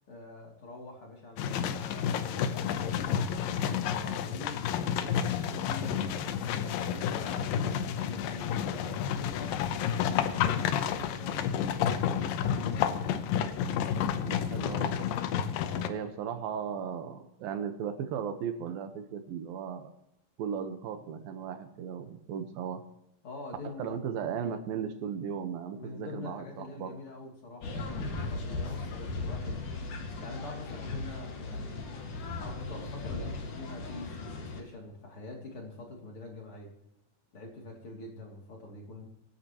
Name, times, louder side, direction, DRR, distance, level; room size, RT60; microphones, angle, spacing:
voice 1, 0.1-12.9 15.6-16.4 23.2-24.1 25.7-29.6 30.0-31.9 32.3-36.7 37.3-39.0, left 2 dB, 40° left, 0 dB, 3.4 m, -45 dB
sound 1, 1.4-15.9, left 8 dB, 80° left, 2.5 m, -30 dB
voice 2, 14.2-15.3 15.9-19.9 20.4-22.8 23.6-26.9, right 7 dB, 85° right, 8 dB, 3.0 m, -36 dB
sound 2, 27.6-34.6, left 3 dB, 65° left, 3.3 m, -37 dB
24.5 x 10.0 x 3.0 m, 0.84 s
omnidirectional pair, 4.0 m